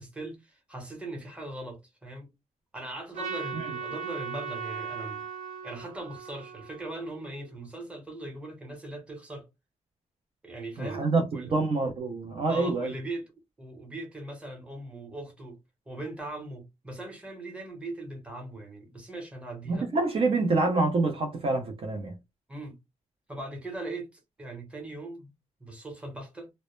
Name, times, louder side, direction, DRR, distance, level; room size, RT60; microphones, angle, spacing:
voice 1, 0.0-2.3 2.7-5.2 5.6-9.5 10.4-11.0 11.3-11.5 12.5-13.2 13.6-15.6 15.9-19.9 22.5-22.7 23.3-25.3 25.6-26.5, right 2 dB, 10° right, 0.9 m, -40 dB
Trumpet, 3.1-7.5, right 6 dB, 70° right, 1.2 m, -38 dB
voice 2, 10.8-12.9 19.7-22.2, right 3 dB, 45° right, 0.5 m, -26 dB
2.0 x 2.0 x 3.0 m
wide cardioid pair, 135°, 13 cm